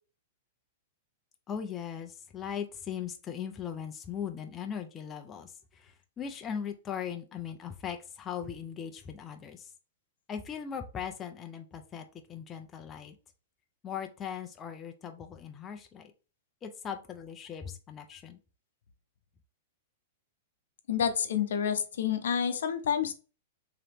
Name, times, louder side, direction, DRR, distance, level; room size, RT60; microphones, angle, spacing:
voice 1, 1.5-9.7 10.3-13.2 13.8-16.1 16.6-18.4, left 8 dB, 15° left, 5 dB, 0.4 m, -39 dB
voice 2, 20.9-23.1, left 8 dB, 85° left, 8 dB, 0.7 m, -29 dB
3.8 x 2.9 x 3.4 m, 0.35 s
supercardioid pair, 165°, 0 cm